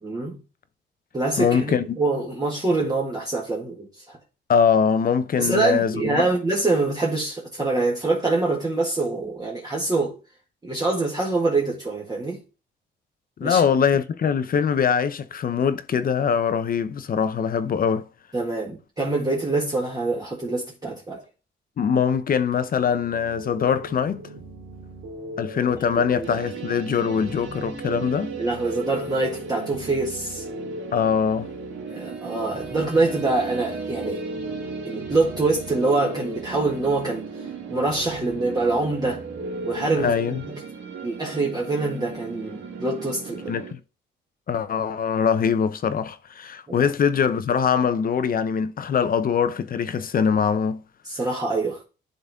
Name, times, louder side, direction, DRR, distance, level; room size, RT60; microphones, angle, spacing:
voice 1, 0.0-0.4 1.1-4.2 5.4-10.2 10.6-12.4 13.4-13.6 18.3-21.2 25.9-26.3 28.4-30.5 31.9-34.2 34.8-37.3 37.7-39.2 39.6-40.1 40.5-40.6 41.0-43.5 46.7-46.9 51.0-51.8, right 3 dB, 20° right, 1.7 m, -25 dB
voice 2, 1.4-2.0 4.5-6.2 13.4-18.1 21.8-24.2 25.4-28.3 30.9-31.5 40.0-40.4 43.5-43.8 44.5-50.8, left 7 dB, 50° left, 0.7 m, -22 dB
sound 1, 22.1-40.5, right 1 dB, 60° right, 2.6 m, -38 dB
sound 2, 26.2-43.7, right 6 dB, 80° right, 2.2 m, -38 dB
11.0 x 4.0 x 3.5 m
cardioid pair, 115°, 20 cm